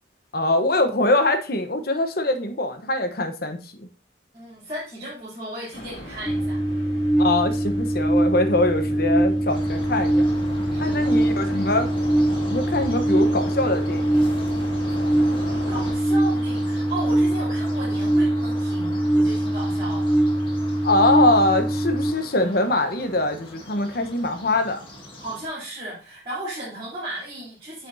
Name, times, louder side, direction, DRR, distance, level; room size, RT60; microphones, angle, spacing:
voice 1, 0.3-3.9 7.2-10.3 10.8-11.9 12.5-14.3 20.8-24.8, left 2 dB, 55° left, 8 dB, 1.0 m, -23 dB
voice 2, 4.3-6.6 10.7-11.2 15.3-20.2 25.2-27.9, right 1 dB, 30° right, -11 dB, 3.1 m, -35 dB
sound 1, 5.7-15.9, equal, 80° left, 2.8 m, -37 dB
sound 2, 6.3-22.1, right 1 dB, 5° left, 0.4 m, -22 dB
sound 3, 9.5-25.5, equal, 30° left, 1.9 m, -40 dB
8.2 x 6.2 x 2.7 m, 0.36 s
head